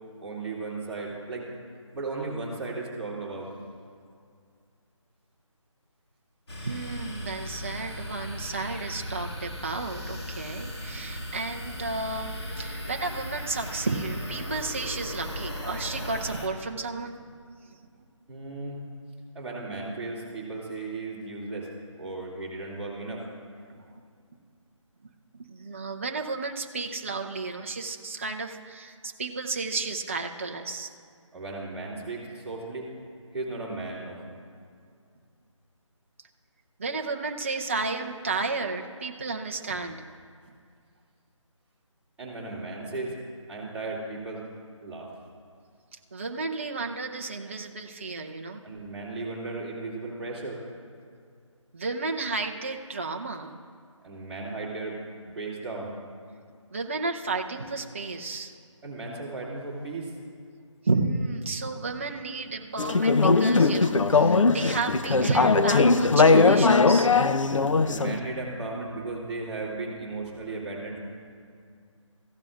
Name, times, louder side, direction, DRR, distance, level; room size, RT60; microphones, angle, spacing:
voice 1, 0.2-1.5 1.9-3.5 18.3-18.8 19.3-21.7 22.0-23.3 31.3-32.9 33.3-34.2 42.2-43.2 43.5-44.5 44.8-45.1 48.6-50.6 54.0-55.0 55.3-55.9 58.8-60.1 67.8-71.0, right 3 dB, 5° right, -11 dB, 2.2 m, -35 dB
sound 1, 6.5-16.5, left 1 dB, 55° left, 2.2 m, -37 dB
voice 2, 6.6-17.2 17.6-18.0 23.8-23.9 25.5-30.9 36.8-40.0 46.1-48.6 51.7-53.5 56.7-58.5 60.8-67.1, right 3 dB, 25° right, 3 dB, 0.5 m, -32 dB
Conversation / Chatter, 62.8-68.2, left 4 dB, 75° left, 0.6 m, -20 dB
15.0 x 12.5 x 2.5 m, 2.2 s
figure-of-eight pair, 160°, 16 cm